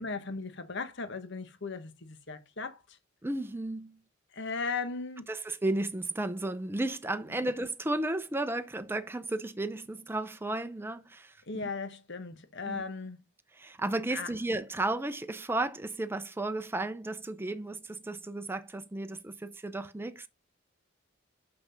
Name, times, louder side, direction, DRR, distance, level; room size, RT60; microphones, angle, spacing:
voice 1, 0.0-3.0 4.3-5.3 11.5-13.2 14.1-14.3, left 4 dB, 60° left, 1.2 m, -37 dB
voice 2, 3.2-4.0 5.3-11.7 12.7-12.8 13.6-20.3, right 2 dB, 10° right, 0.6 m, -34 dB
6.0 x 5.8 x 5.7 m
head